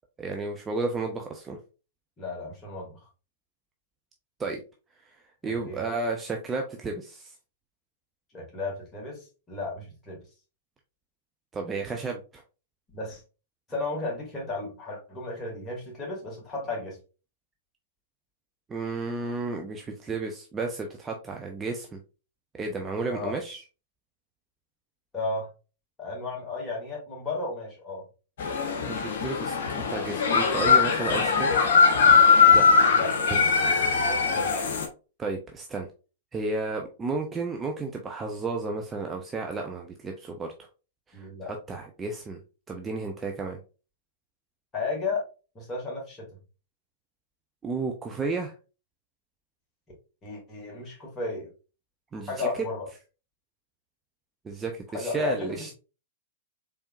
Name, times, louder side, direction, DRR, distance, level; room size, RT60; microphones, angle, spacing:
voice 1, 0.2-1.6 4.4-4.6 5.4-7.3 11.5-12.4 18.7-22.0 22.6-23.6 28.8-31.5 32.5-32.7 33.3-33.6 35.2-35.9 36.3-40.5 41.1-42.4 42.7-43.6 47.6-48.5 52.1-52.7 54.4-55.7, right 3 dB, 15° right, 2 dB, 0.6 m, -32 dB
voice 2, 2.2-3.0 5.4-5.8 8.3-10.2 12.9-13.2 13.7-17.0 23.1-23.4 25.1-25.5 26.0-28.0 32.9-33.3 33.9-34.5 41.1-41.5 44.7-45.2 45.5-46.3 50.2-51.5 52.3-52.9 54.9-55.7, left 3 dB, 20° left, -2 dB, 2.3 m, -34 dB
sound 1, 28.4-34.9, left 5 dB, 60° left, 1.1 m, -21 dB
4.4 x 3.5 x 2.4 m, 0.33 s
figure-of-eight pair, 105°, 0 cm